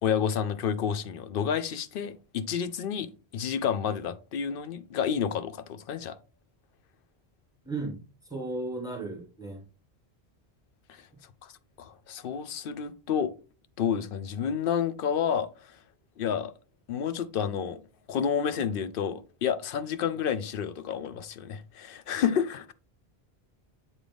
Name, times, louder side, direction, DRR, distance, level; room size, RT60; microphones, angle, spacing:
voice 1, 0.0-6.2 10.9-11.0 11.4-11.5 11.8-13.3 13.8-15.8 16.2-16.5 16.9-17.8 18.1-22.7, left 7 dB, 65° left, 0.7 m, -30 dB
voice 2, 7.6-8.0 8.3-9.6, right 2 dB, 5° right, 1.5 m, -35 dB
8.1 x 3.8 x 3.4 m
omnidirectional pair, 1.1 m